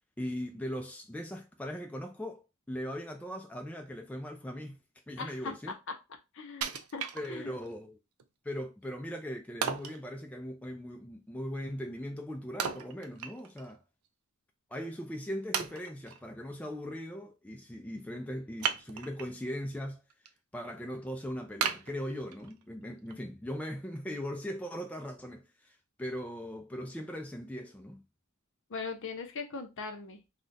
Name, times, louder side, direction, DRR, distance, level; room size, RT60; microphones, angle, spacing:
voice 1, 0.2-4.8 5.1-5.7 7.1-8.0 8.4-13.8 14.7-20.0 20.5-28.0, equal, 5° left, 0.3 m, -39 dB
voice 2, 5.2-5.5 5.9-6.0 6.3-7.5 28.7-30.2, left 4 dB, 60° left, 0.7 m, -40 dB
Wood, 6.6-7.7 8.2-8.3 9.6-10.0 12.6-13.7 14.0-14.1 14.8-14.9 15.5-16.2 18.6-19.4 19.8-20.3 20.7-20.8 21.6-22.6 23.1-23.2, right 7 dB, 80° right, 0.4 m, -35 dB
2.4 x 2.1 x 3.8 m
head